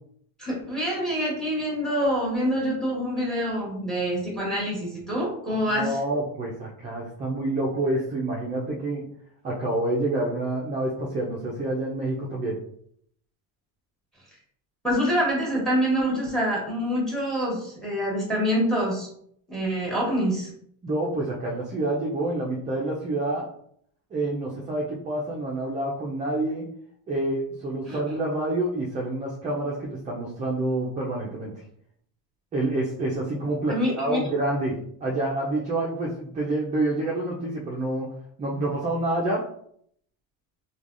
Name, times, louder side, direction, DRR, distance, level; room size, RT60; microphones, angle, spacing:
voice 1, 0.4-6.0 14.8-19.1 19.5-20.5 27.8-28.0 33.7-34.2, equal, ahead, -3 dB, 1.1 m, -26 dB
voice 2, 5.8-9.1 9.4-12.6 20.8-23.5 24.1-26.7 27.1-31.5 32.5-38.1 38.4-39.4, right 2 dB, 20° right, -3 dB, 0.4 m, -28 dB
3.2 x 2.3 x 2.4 m, 0.66 s
cardioid pair, 125°, 42 cm